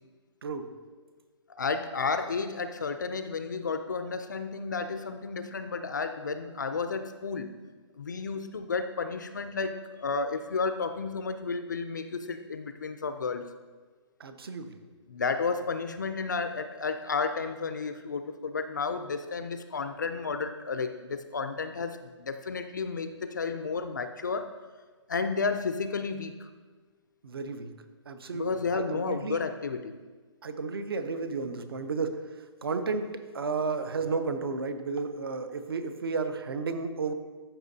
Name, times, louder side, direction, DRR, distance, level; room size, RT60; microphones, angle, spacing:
voice 1, 0.4-0.7 14.2-14.8 27.2-27.7 28.1-29.4 30.4-32.2 32.6-37.1, right 4 dB, 50° right, 10 dB, 0.7 m, -32 dB
voice 2, 1.6-7.5 8.0-13.5 15.1-24.5 25.1-26.5 28.3-30.0, left 4 dB, 40° left, 10 dB, 0.4 m, -32 dB
13.5 x 5.9 x 2.7 m, 1.4 s
hypercardioid pair, 180°, 16 cm